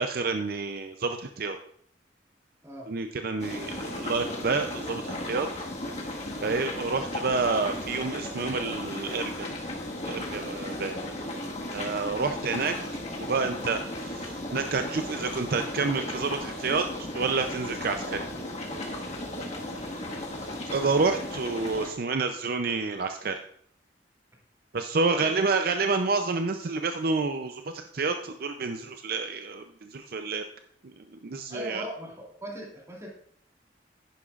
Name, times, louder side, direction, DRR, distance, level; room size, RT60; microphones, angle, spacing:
voice 1, 0.0-1.6 2.9-5.5 6.4-9.5 10.0-11.0 11.7-12.7 13.2-16.9 17.1-18.3 20.4-23.4 24.7-30.4 31.2-31.9, right 4 dB, 55° right, 7 dB, 0.5 m, -29 dB
sound 1, 3.4-21.9, left 1 dB, 40° left, 1.6 m, -35 dB
voice 2, 31.5-33.1, equal, 20° right, -3 dB, 2.9 m, -40 dB
10.5 x 10.0 x 2.4 m, 0.65 s
head